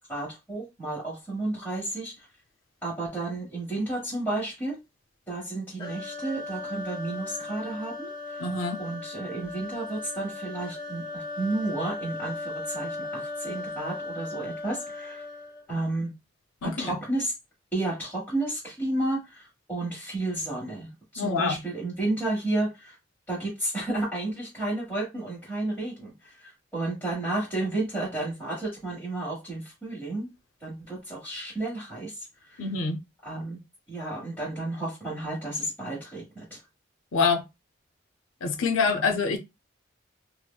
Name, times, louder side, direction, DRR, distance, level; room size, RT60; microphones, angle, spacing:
voice 1, 0.1-2.3 2.8-4.8 5.3-8.5 8.8-15.2 15.7-16.1 16.6-17.3 17.7-22.9 23.3-30.3 30.6-32.2 32.4-32.6 33.2-33.6 33.9-36.6 38.9-39.2, right 2 dB, 10° left, 1.2 m, -32 dB
sound 1, 5.8-15.7, left 2 dB, 25° left, 0.8 m, -37 dB
voice 2, 8.4-8.8 16.6-16.9 21.2-21.6 32.6-33.0 37.1-37.4 38.4-39.4, left 4 dB, 90° left, 0.5 m, -26 dB
4.3 x 2.0 x 2.2 m
head